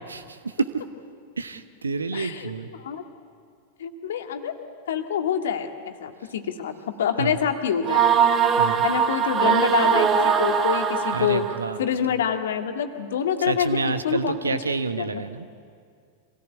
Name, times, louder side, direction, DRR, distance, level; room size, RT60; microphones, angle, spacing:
voice 1, 0.1-0.7 1.4-2.7 7.2-7.4 8.5-8.8 11.1-11.8 13.5-15.5, right 4 dB, 75° right, 11 dB, 1.2 m, -28 dB
voice 2, 2.1-2.5 2.8-3.0 3.8-4.5 4.9-8.0 8.8-11.4 11.8-14.6 15.0-15.2, left 8 dB, 60° left, 6 dB, 1.9 m, -26 dB
sound 1, 7.8-11.7, right 7 dB, 30° right, 1.7 m, -21 dB
26.0 x 18.0 x 10.0 m, 2.3 s
figure-of-eight pair, 90°, 0 cm